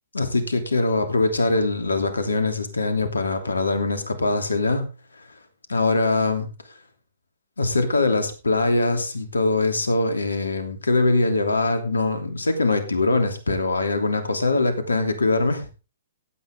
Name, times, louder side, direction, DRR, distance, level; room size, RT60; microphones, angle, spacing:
voice 1, 0.1-4.9 5.2-5.3 5.7-6.5 7.6-15.7, left 2 dB, 80° left, 7 dB, 2.9 m, -22 dB
15.5 x 8.9 x 3.7 m, 0.31 s
figure-of-eight pair, 125°, 0 cm